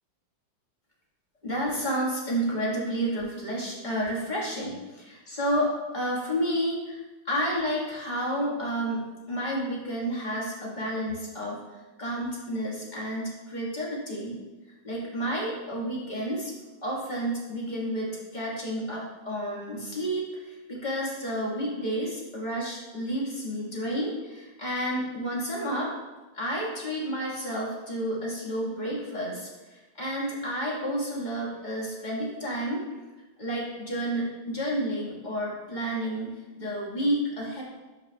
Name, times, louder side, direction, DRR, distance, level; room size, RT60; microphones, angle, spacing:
voice 1, 1.4-7.0 7.2-9.0 9.3-11.6 12.0-14.4 14.8-16.5 16.8-25.9 26.3-32.8 33.4-37.6, equal, 25° left, -5 dB, 1.6 m, -30 dB
10.5 x 5.6 x 2.3 m, 1.2 s
omnidirectional pair, 2.1 m